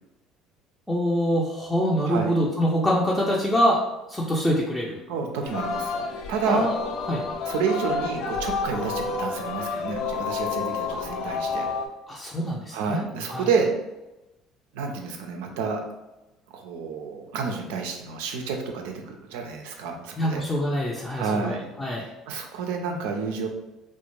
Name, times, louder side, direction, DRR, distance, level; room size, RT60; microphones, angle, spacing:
voice 1, 0.9-3.8 4.1-5.0 6.5-6.7 7.1-7.2 10.9-11.0 12.1-13.0 13.3-13.5 20.2-22.0, equal, 10° left, -5 dB, 0.5 m, -25 dB
voice 2, 5.1-5.9 6.3-6.7 7.5-11.7 12.7-13.7 14.7-15.8 16.5-20.4 21.2-21.7 22.0-23.5, right 5 dB, 75° right, 3 dB, 0.4 m, -29 dB
Singing, 5.4-11.9, left 4 dB, 65° left, 0.3 m, -30 dB
2.4 x 2.2 x 3.0 m, 0.98 s
hypercardioid pair, 65°, 0 cm